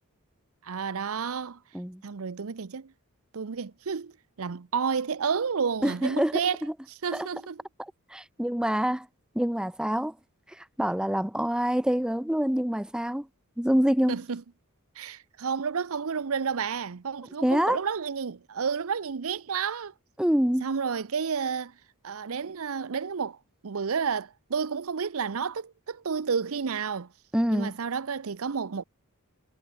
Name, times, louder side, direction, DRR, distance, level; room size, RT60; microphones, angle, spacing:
voice 1, 0.6-1.6 2.0-2.9 3.3-4.1 4.4-6.6 6.9-7.6 14.1-14.4 15.0-19.9 20.6-21.7 22.0-23.4 23.6-27.1 27.5-28.8, right 6 dB, 70° right, 0.7 m, -31 dB
voice 2, 5.8-6.4 7.1-7.3 7.8-9.1 9.3-10.1 10.6-13.3 13.6-14.2 17.4-17.8 20.2-20.7 27.3-27.7, equal, 5° right, 0.6 m, -26 dB
head